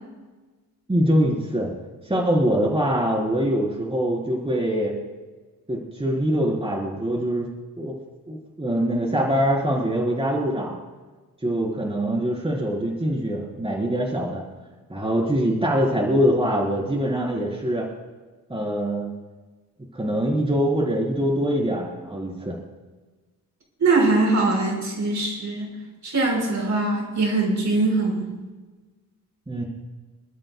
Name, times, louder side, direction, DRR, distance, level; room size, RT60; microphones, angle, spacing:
voice 1, 0.9-1.7 2.0-4.9 5.7-7.5 7.8-7.9 8.3-10.7 11.4-14.4 14.9-17.9 18.5-19.1 19.9-22.6 29.5-29.6, equal, 15° right, -2 dB, 4.1 m, -23 dB
voice 2, 23.8-25.7 26.0-28.3, right 3 dB, 55° right, -2 dB, 5.5 m, -22 dB
28.0 x 13.0 x 2.3 m, 1.3 s
cardioid pair, 85°, 33 cm